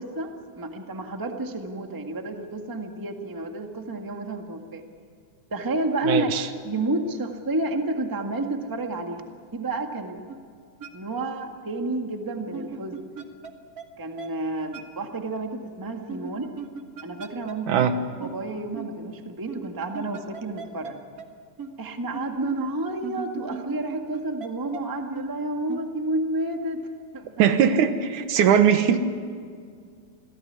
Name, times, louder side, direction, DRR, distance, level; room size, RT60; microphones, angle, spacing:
voice 1, 0.0-4.8 5.5-9.2 9.5-10.2 10.9-13.0 14.0-16.5 17.0-17.9 18.2-21.0 21.8-26.8 27.1-27.4 27.7-27.8, right 2 dB, 10° right, 4 dB, 1.0 m, -30 dB
voice 2, 6.1-6.4 17.7-18.0 27.4-29.0, right 8 dB, 80° right, 9 dB, 2.7 m, -20 dB
sound 1, 10.3-10.4 10.8-10.9 12.5-13.5 13.8-13.9 14.2-14.3 14.7-14.8 16.1-17.5 17.8-17.9 18.2-18.3 18.7-18.8 19.5-20.9 21.2-21.3 21.6-21.7 22.1-22.2 23.0-24.5 24.7-24.8 25.1-25.3 25.7-25.8, right 6 dB, 40° right, 1.6 m, -36 dB
27.5 x 17.0 x 9.6 m, 2.1 s
omnidirectional pair, 3.5 m